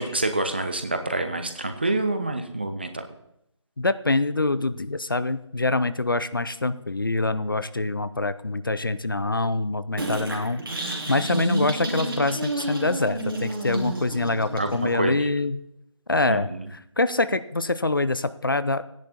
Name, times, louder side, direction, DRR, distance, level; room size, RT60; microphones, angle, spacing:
voice 1, 0.0-3.1 14.6-15.3 16.3-16.7, right 2 dB, 20° right, 7 dB, 0.6 m, -27 dB
voice 2, 3.8-15.6 16.1-16.5 17.0-18.8, left 2 dB, 45° left, 14 dB, 0.6 m, -25 dB
sound 1, 10.0-15.0, right 1 dB, 45° right, 2.9 m, -30 dB
14.5 x 10.5 x 4.3 m, 0.79 s
figure-of-eight pair, 160°, 16 cm